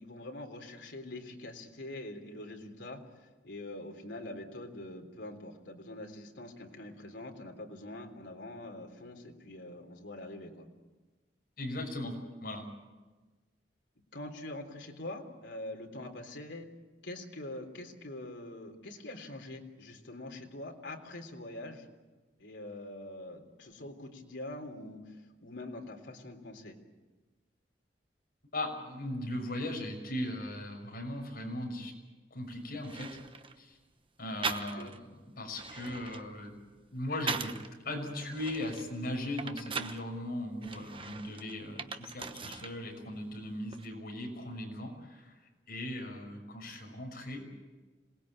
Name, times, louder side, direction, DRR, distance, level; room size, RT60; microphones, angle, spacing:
voice 1, 0.0-10.7 14.1-16.7 17.0-21.9 22.4-26.8 34.8-34.9, left 1 dB, 80° left, 3 dB, 3.6 m, -44 dB
voice 2, 11.6-12.1 12.4-12.7 28.5-31.9 32.3-33.2 33.5-33.8 34.2-36.6 36.9-37.5 37.8-45.3 45.7-47.4, left 1 dB, 55° left, 2 dB, 6.3 m, -38 dB
sound 1, 32.4-32.5 32.8-33.6 34.4-35.0 35.4-37.7 38.2-40.0 40.6-42.8 43.1-43.9, right 5 dB, 30° right, 1.0 m, -40 dB
27.0 x 19.5 x 8.8 m, 1.3 s
head